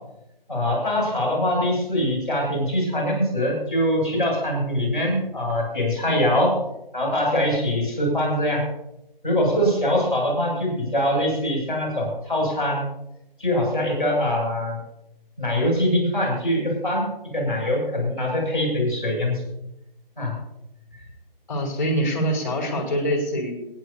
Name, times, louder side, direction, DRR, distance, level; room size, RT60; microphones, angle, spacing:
voice 1, 0.5-6.5 6.9-8.6 9.2-12.9 13.4-14.8 15.4-17.1 17.3-19.4 20.2-20.3, left 1 dB, 5° right, -14 dB, 6.1 m, -23 dB
voice 2, 21.5-23.5, equal, 20° left, 1 dB, 3.8 m, -24 dB
24.5 x 10.0 x 2.9 m, 0.84 s
figure-of-eight pair, 175°, 29 cm